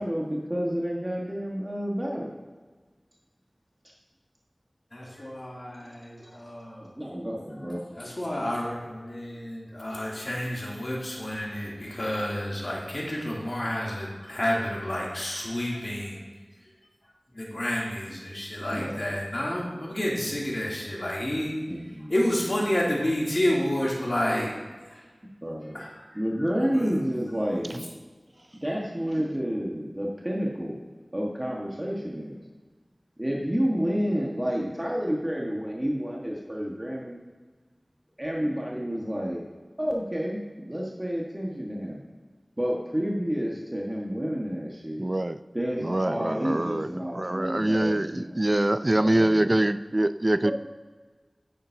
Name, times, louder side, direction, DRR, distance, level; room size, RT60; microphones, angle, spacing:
voice 1, 0.0-2.3 6.9-7.8 18.7-19.0 21.7-22.1 25.4-25.8 26.1-27.9 28.6-30.8 31.1-32.4 33.2-37.2 38.2-39.4 39.8-42.0 42.6-45.1 45.5-48.5 48.9-49.6 50.4-50.5, equal, 25° right, -3 dB, 1.5 m, -30 dB
voice 2, 4.9-6.9 7.6-16.2 17.3-21.6 22.1-24.5 24.9-25.0 25.6-26.9 27.5-27.6, left 1 dB, 55° left, -5 dB, 2.8 m, -30 dB
voice 3, 45.0-45.4 45.8-50.5, right 1 dB, 40° right, 12 dB, 0.4 m, -24 dB
10.5 x 8.8 x 2.8 m, 1.4 s
wide cardioid pair, 50°, 0 cm